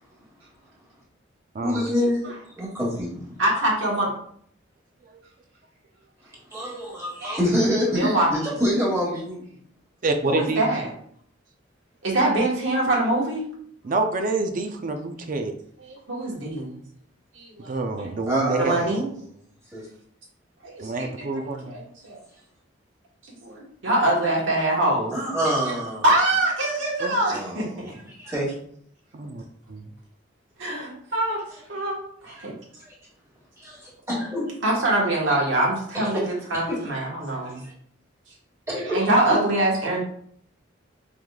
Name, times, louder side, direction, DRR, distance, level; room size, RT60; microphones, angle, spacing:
voice 1, 1.6-3.4 6.5-9.4 18.3-19.0 19.7-19.9 25.1-26.0 27.3-28.5 32.3-32.5 32.8-32.9 33.6-34.6 35.3-35.4 35.9-36.2 36.5-36.8 37.6-37.7 38.7-39.0 39.3-39.4, equal, 15° right, -6 dB, 1.4 m, -27 dB
voice 2, 3.4-4.1 7.2-7.4 7.9-8.3 10.3-10.8 12.0-13.4 15.8-16.8 17.3-18.1 18.6-19.1 20.6-22.2 23.4-25.1 26.0-27.9 30.6-32.5 34.6-37.6 38.8-40.0, right 1 dB, 70° right, -3 dB, 1.3 m, -24 dB
voice 3, 10.0-10.7 13.8-15.5 17.7-18.7 20.8-21.8 27.0-27.2 29.1-29.4 29.7-29.8, right 3 dB, 45° right, 6 dB, 0.4 m, -27 dB
4.8 x 3.6 x 2.3 m, 0.63 s
head